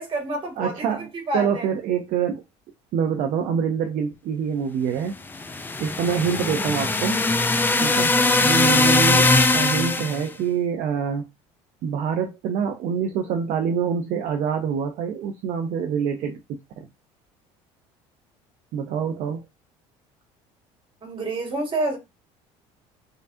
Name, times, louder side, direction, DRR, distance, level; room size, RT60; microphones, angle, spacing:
voice 1, 0.0-0.9 1.3-1.7 21.0-22.0, right 2 dB, 35° right, 2.2 m, -28 dB
voice 2, 0.6-1.1 1.3-2.4 2.9-5.1 5.8-7.2 7.8-8.1 8.4-11.3 11.8-16.9 18.7-19.4, right 7 dB, 65° right, 0.7 m, -26 dB
sound 1, 5.3-10.3, left 2 dB, 15° left, 0.5 m, -20 dB
3.8 x 3.3 x 2.7 m
supercardioid pair, 95°, 14 cm